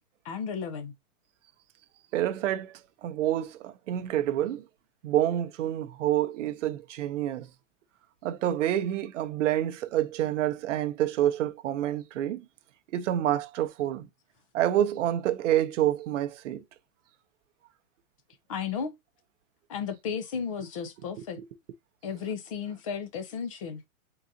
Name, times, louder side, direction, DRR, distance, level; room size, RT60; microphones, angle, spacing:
voice 1, 0.2-0.9 18.5-18.9 19.7-21.4 22.0-23.8, left 6 dB, 25° left, 0.4 m, -34 dB
voice 2, 2.1-4.7 5.0-7.5 8.2-12.4 12.9-14.1 14.5-16.6 21.4-21.5, right 12 dB, 60° right, 0.7 m, -28 dB
4.0 x 3.8 x 2.6 m
hypercardioid pair, 155°, 43 cm